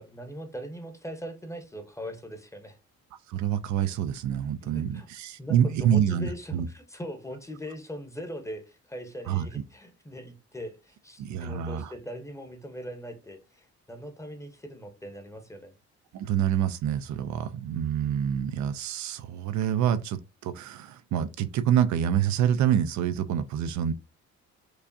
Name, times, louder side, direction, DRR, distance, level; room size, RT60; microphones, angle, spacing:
voice 1, 0.0-2.8 4.6-5.1 5.4-15.7, equal, 10° left, 0.8 m, -40 dB
voice 2, 3.3-6.7 9.3-9.5 11.2-11.9 16.1-23.9, right 9 dB, 70° right, 0.4 m, -27 dB
4.7 x 2.4 x 2.5 m
cardioid pair, 90°, 30 cm